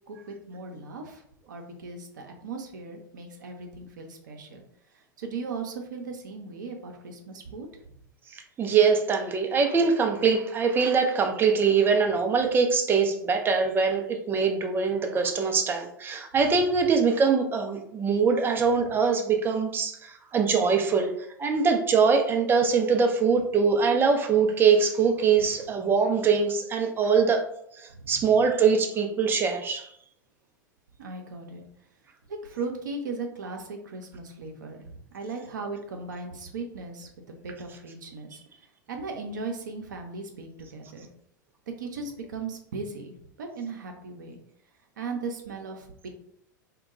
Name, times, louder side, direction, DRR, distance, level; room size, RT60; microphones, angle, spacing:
voice 1, 0.1-4.6 4.9-7.8 27.9-28.3 31.0-31.6 32.3-38.4 38.9-41.1 41.8-44.4 45.0-46.1, right 4 dB, 65° right, 3 dB, 0.6 m, -37 dB
voice 2, 8.3-21.1 21.4-27.4 27.8-29.9, right 5 dB, 20° right, 4 dB, 0.5 m, -23 dB
2.2 x 2.2 x 3.9 m, 0.69 s
figure-of-eight pair, 90°, 11 cm